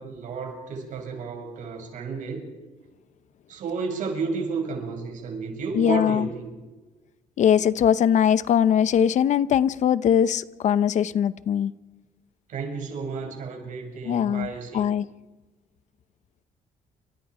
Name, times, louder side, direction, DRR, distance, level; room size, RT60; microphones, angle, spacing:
voice 1, 0.0-2.5 3.5-6.5 12.5-14.8, right 4 dB, 65° right, 6.9 m, -32 dB
voice 2, 5.7-6.3 7.4-11.7 14.1-15.1, left 9 dB, 60° left, 0.8 m, -21 dB
29.5 x 26.5 x 5.0 m
cardioid pair, 125°, 14 cm